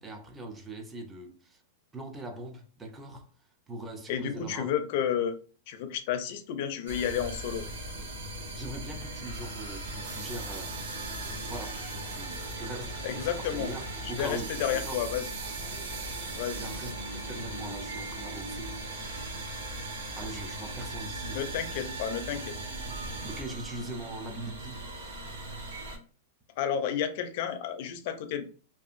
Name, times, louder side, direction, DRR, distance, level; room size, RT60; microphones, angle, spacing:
voice 1, 0.0-1.6 1.9-3.3 3.7-4.7 8.5-10.8 11.4-15.0 16.5-18.7 20.2-21.5 23.2-24.8, right 2 dB, 10° right, 0.4 m, -41 dB
voice 2, 4.1-5.4 5.7-7.7 13.0-13.7 14.0-15.2 16.3-16.6 21.3-22.6 26.6-28.5, left 9 dB, 50° left, 0.4 m, -31 dB
sound 1, 6.9-26.0, right 1 dB, 85° right, 0.9 m, -38 dB
sound 2, 10.0-16.9, right 5 dB, 55° right, 0.6 m, -44 dB
2.7 x 2.3 x 2.4 m
supercardioid pair, 155°, 0 cm